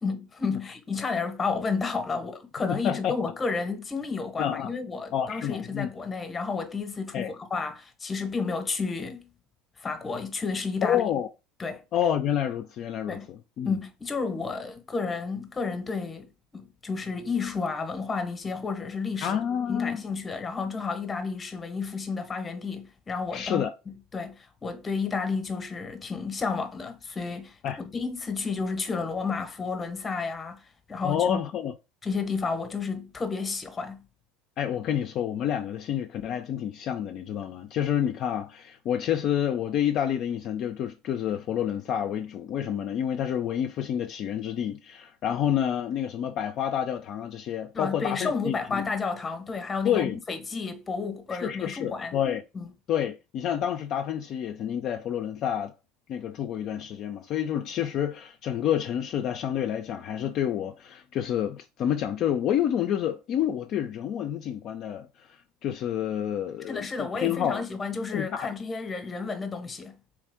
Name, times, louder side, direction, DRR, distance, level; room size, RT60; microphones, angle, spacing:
voice 1, 0.0-9.3 9.8-11.0 11.6-11.8 13.1-13.3 13.6-19.4 19.7-23.6 24.1-31.4 32.0-34.0 47.7-52.2 52.5-52.7 66.7-70.0, left 4 dB, 20° left, 0.8 m, -31 dB
voice 2, 2.7-3.1 4.4-4.7 5.1-5.9 7.1-7.3 10.8-11.3 11.9-13.8 19.2-20.0 23.3-23.7 27.6-27.8 31.0-31.7 34.6-48.8 49.8-50.2 51.3-52.4 52.9-55.7 56.1-67.6 68.1-68.5, left 9 dB, 50° left, 0.4 m, -29 dB
3.5 x 3.2 x 3.4 m
supercardioid pair, 115°, 0 cm